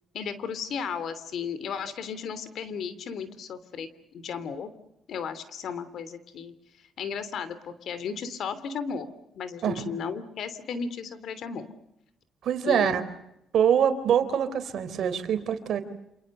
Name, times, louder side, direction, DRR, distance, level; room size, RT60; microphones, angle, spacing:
voice 1, 0.1-4.7 5.1-6.5 7.0-9.1 9.3-11.7 12.6-13.0, left 6 dB, 70° left, 14 dB, 3.0 m, -34 dB
voice 2, 12.4-13.0 13.5-15.8, right 8 dB, 70° right, 10 dB, 3.7 m, -24 dB
28.5 x 28.0 x 6.6 m, 0.83 s
cardioid pair, 90°, 0 cm